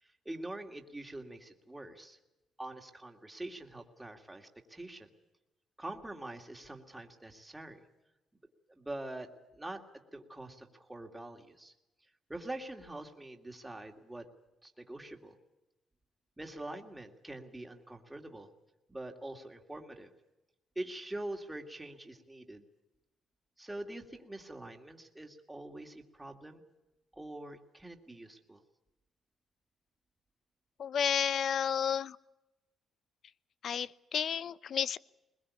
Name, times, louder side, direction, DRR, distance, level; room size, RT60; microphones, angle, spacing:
voice 1, 0.0-2.2 2.6-5.1 5.8-7.9 8.7-9.8 10.1-11.7 12.3-14.2 14.6-15.4 16.4-18.5 18.9-20.1 20.8-22.7 23.6-26.6 27.1-28.6, right 1 dB, 10° right, 2 dB, 2.6 m, -44 dB
voice 2, 30.8-32.2 33.6-35.0, left 8 dB, 60° left, 18 dB, 0.7 m, -31 dB
21.5 x 21.0 x 8.5 m, 1.0 s
cardioid pair, 90°, 0 cm